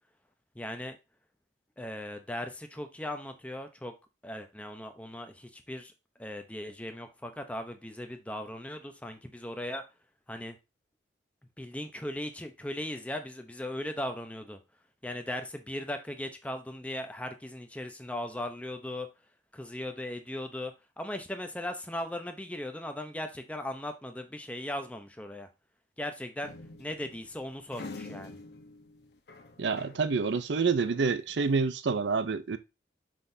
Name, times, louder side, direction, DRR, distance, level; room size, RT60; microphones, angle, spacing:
voice 1, 0.5-1.0 1.8-3.9 4.2-5.9 6.2-9.8 10.3-10.6 11.6-14.6 15.0-19.1 19.5-25.5 26.0-26.5 26.8-28.4, left 1 dB, 5° left, 0.7 m, -38 dB
sound 1, 26.4-30.2 30.5-31.6, left 3 dB, 65° left, 0.9 m, -47 dB
voice 2, 29.6-32.6, right 4 dB, 80° right, 0.5 m, -28 dB
6.1 x 5.7 x 2.7 m
head